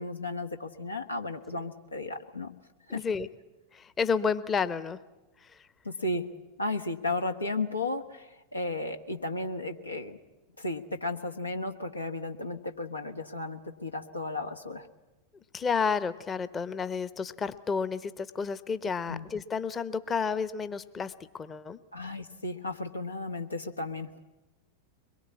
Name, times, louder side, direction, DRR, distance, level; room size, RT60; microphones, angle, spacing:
voice 1, 0.0-2.5 2.9-3.0 5.8-6.3 6.6-10.2 10.6-14.9 19.1-19.2 21.9-24.1, left 2 dB, 80° left, 5 dB, 1.3 m, -34 dB
voice 2, 2.9-3.3 3.7-5.0 5.4-5.7 15.3-21.8, left 5 dB, 20° left, 15 dB, 0.9 m, -31 dB
23.0 x 21.5 x 8.4 m, 1.1 s
figure-of-eight pair, 90°, 0 cm